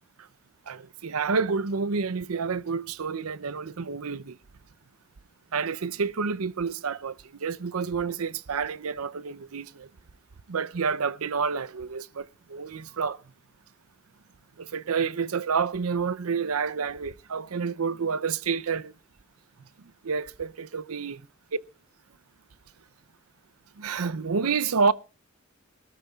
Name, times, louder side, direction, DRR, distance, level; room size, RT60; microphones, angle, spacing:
voice 1, 0.7-4.4 5.5-9.9 10.5-13.2 14.6-18.9 20.0-21.2 23.8-24.9, right 5 dB, 85° right, 0.6 m, -29 dB
23.0 x 13.5 x 2.4 m
head